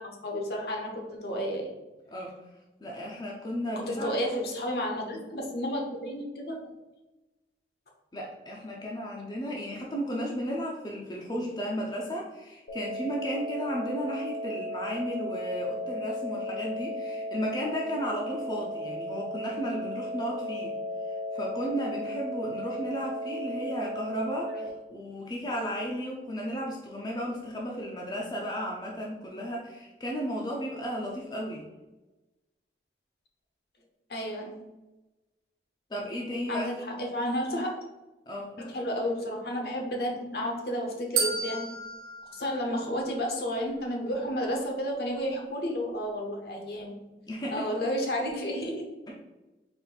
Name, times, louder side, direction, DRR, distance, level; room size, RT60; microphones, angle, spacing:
voice 1, 0.0-1.7 3.8-6.7 34.1-34.6 36.5-37.8 38.6-41.7 42.3-47.1 47.5-48.9, equal, 60° left, 1 dB, 0.8 m, -32 dB
voice 2, 2.8-4.1 8.1-20.8 21.1-31.6 35.9-36.7 38.3-38.5 47.3-47.7 49.1-49.2, equal, 25° left, -2 dB, 0.5 m, -34 dB
sound 1, 12.7-24.7, equal, 90° left, 0.7 m, -35 dB
sound 2, 41.2-43.4, right 5 dB, 55° right, 0.7 m, -33 dB
4.2 x 2.5 x 3.9 m, 1.1 s
head